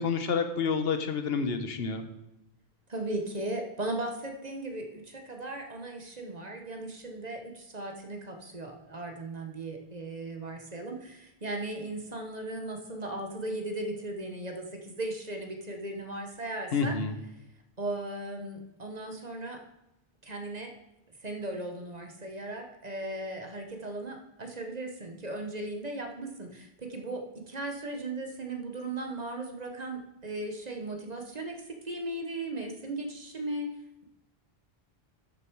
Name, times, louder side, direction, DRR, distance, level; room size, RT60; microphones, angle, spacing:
voice 1, 0.0-2.1 16.7-17.1, left 5 dB, 75° left, 8 dB, 1.2 m, -29 dB
voice 2, 2.9-16.9 17.8-19.6 20.2-20.7 21.2-33.7, right 2 dB, 40° right, 3 dB, 1.3 m, -37 dB
12.0 x 6.9 x 4.7 m, 0.87 s
omnidirectional pair, 1.0 m